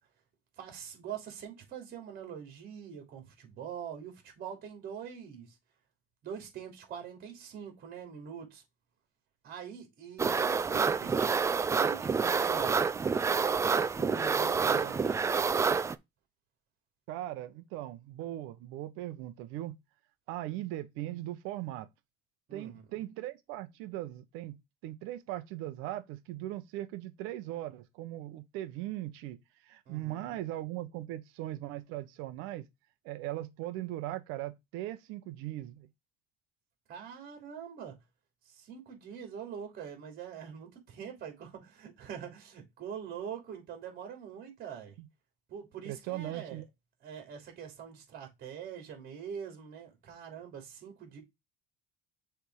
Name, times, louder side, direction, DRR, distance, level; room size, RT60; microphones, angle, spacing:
voice 1, 0.6-5.6 6.2-8.6 9.4-11.3 11.7-12.9 13.4-15.5 22.5-22.9 29.9-30.4 36.9-38.0 38.4-45.0 45.5-46.6 47.0-51.2, right 8 dB, 50° right, 3.0 m, -44 dB
sound 1, 10.2-15.9, right 5 dB, 15° right, 0.3 m, -28 dB
voice 2, 17.1-19.8 20.3-21.9 22.5-24.6 24.8-29.4 29.6-32.6 33.0-35.9 45.0-45.1 45.9-46.6, right 14 dB, 85° right, 1.0 m, -39 dB
6.8 x 3.6 x 4.8 m
cardioid pair, 145°, 21 cm